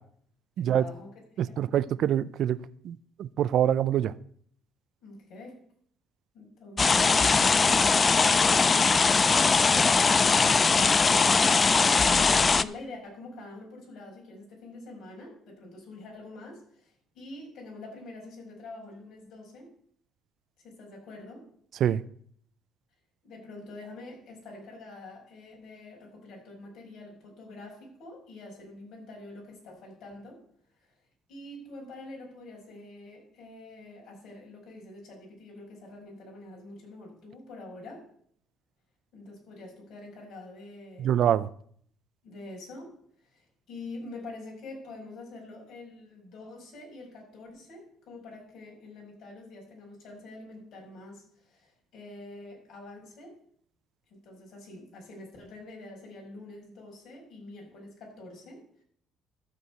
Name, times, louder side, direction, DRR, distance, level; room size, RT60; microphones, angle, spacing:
voice 1, 0.6-1.1 1.4-1.7 5.0-5.6 6.3-9.2 12.0-19.7 20.6-21.4 23.2-30.4 31.3-38.0 39.1-41.1 42.2-42.9 43.2-53.4 54.1-58.6, left 2 dB, 60° left, -1 dB, 5.3 m, -45 dB
voice 2, 1.4-2.6 2.8-4.1 21.8-22.0 41.0-41.5, right 10 dB, 55° right, 15 dB, 0.4 m, -25 dB
sound 1, 6.8-12.6, left 4 dB, 25° left, 0.4 m, -21 dB
12.5 x 4.7 x 8.0 m, 0.63 s
cardioid pair, 125°, 0 cm